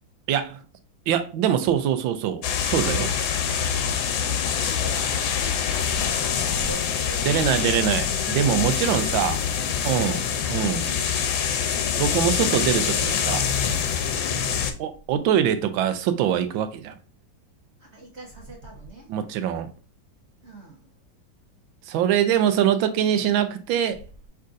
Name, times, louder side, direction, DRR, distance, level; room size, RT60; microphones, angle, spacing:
voice 1, 0.3-0.6 1.1-3.1 7.3-9.4 9.8-10.2 10.5-10.9 12.0-13.5 14.8-17.0 19.1-19.7 21.9-24.0, right 9 dB, 85° right, 1.4 m, -23 dB
sound 1, 2.4-14.7, left 7 dB, 90° left, 1.5 m, -25 dB
voice 2, 4.6-7.9 9.1-10.4 10.8-11.2 14.2-14.7 17.8-19.1 20.4-20.9, right 1 dB, 40° right, 1.3 m, -42 dB
5.5 x 3.6 x 2.5 m
omnidirectional pair, 2.1 m